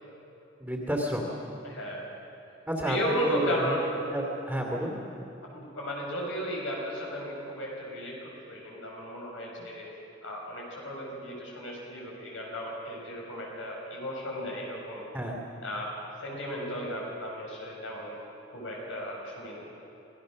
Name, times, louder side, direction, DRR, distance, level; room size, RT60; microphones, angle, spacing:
voice 1, 0.6-1.3 2.7-3.7 4.1-5.0 15.1-15.4, right 1 dB, 5° right, -1 dB, 2.6 m, -31 dB
voice 2, 1.6-2.1 2.9-4.1 5.5-9.9 10.2-15.1 15.6-15.9 16.2-18.2 18.5-19.7, equal, 80° left, -2 dB, 6.5 m, -34 dB
27.5 x 17.5 x 6.5 m, 2.9 s
head